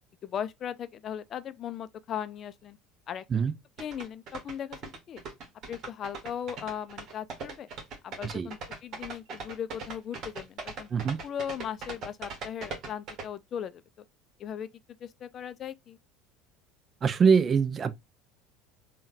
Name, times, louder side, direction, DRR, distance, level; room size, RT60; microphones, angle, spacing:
voice 1, 0.2-2.8 3.1-3.2 3.8-5.2 5.7-7.7 8.0-10.9 11.2-13.8 14.4-14.7 15.0-16.0, left 9 dB, 45° left, 0.3 m, -38 dB
sound 1, 3.8-13.2, right 4 dB, 55° right, 1.1 m, -39 dB
voice 2, 17.0-17.9, right 6 dB, 35° right, 0.4 m, -24 dB
3.6 x 2.2 x 2.5 m
hypercardioid pair, 80°, 0 cm